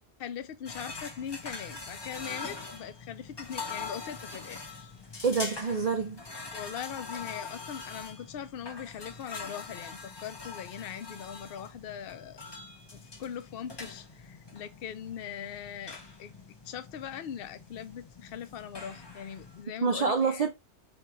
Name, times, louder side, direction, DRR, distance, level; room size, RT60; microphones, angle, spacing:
voice 1, 0.2-4.9 6.5-12.4 12.9-16.3 16.6-20.4, left 9 dB, 60° left, 0.8 m, -41 dB
sound 1, 0.7-19.6, left 4 dB, 25° left, 0.7 m, -43 dB
voice 2, 5.2-6.2 19.8-20.6, right 5 dB, 45° right, 0.5 m, -27 dB
4.1 x 3.5 x 3.0 m
omnidirectional pair, 1.2 m